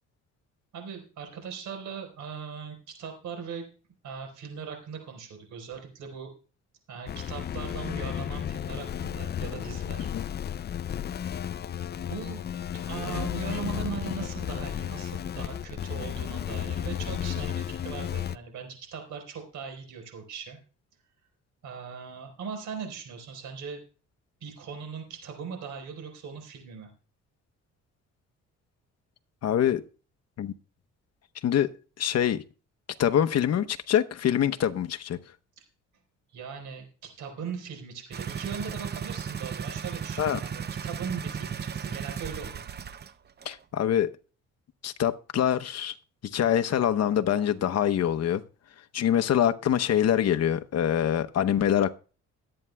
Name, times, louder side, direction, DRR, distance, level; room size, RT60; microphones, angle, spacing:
voice 1, 0.7-3.6 4.0-6.3 6.9-10.1 12.1-12.4 12.9-20.6 21.6-23.8 24.4-26.9 36.3-42.6, right 6 dB, 80° right, 4 dB, 4.3 m, -39 dB
sound 1, 7.1-18.4, left 9 dB, 35° left, 0.4 m, -33 dB
voice 2, 29.4-29.8 30.4-30.5 31.4-31.7 32.0-32.4 33.0-35.2 40.2-40.4 43.4-44.1 44.8-45.9 46.3-48.4 48.9-51.9, left 10 dB, 55° left, 9 dB, 0.9 m, -24 dB
sound 2, 38.1-43.1 43.4-43.5, right 7 dB, 35° right, 0.6 m, -35 dB
22.0 x 8.8 x 2.3 m, 0.36 s
cardioid pair, 90°, 30 cm